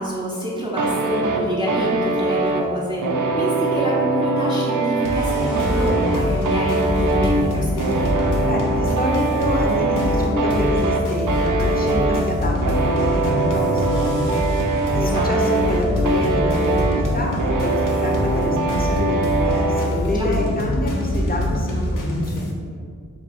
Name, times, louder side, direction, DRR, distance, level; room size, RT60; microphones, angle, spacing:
voice 1, 0.0-8.3 15.0-15.6 20.1-20.3, equal, 15° right, -7 dB, 0.6 m, -27 dB
sound 1, 0.8-19.9, right 3 dB, 75° right, 0.5 m, -23 dB
sound 2, 5.1-22.5, left 1 dB, 85° left, 0.7 m, -24 dB
voice 2, 8.4-14.4 14.9-22.6, left 1 dB, 30° left, -1 dB, 0.7 m, -27 dB
3.5 x 2.4 x 4.2 m, 2.2 s
wide cardioid pair, 70°, 31 cm